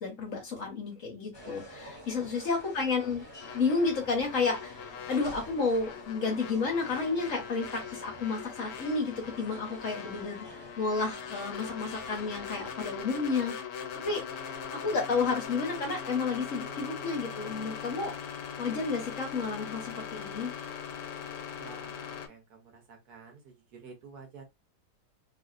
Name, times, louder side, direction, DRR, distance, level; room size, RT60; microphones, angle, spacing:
voice 1, 0.0-3.2 3.5-10.4 10.8-13.5 14.0-14.4 14.7-18.1 18.6-20.5, left 4 dB, 55° left, 1.2 m, -31 dB
sound 1, 1.3-13.0, equal, 30° left, 1.5 m, -48 dB
sound 2, 3.4-22.3, left 7 dB, 75° left, 1.3 m, -41 dB
voice 2, 21.6-24.4, right 5 dB, 65° right, 1.4 m, -51 dB
3.1 x 2.7 x 2.4 m
omnidirectional pair, 1.9 m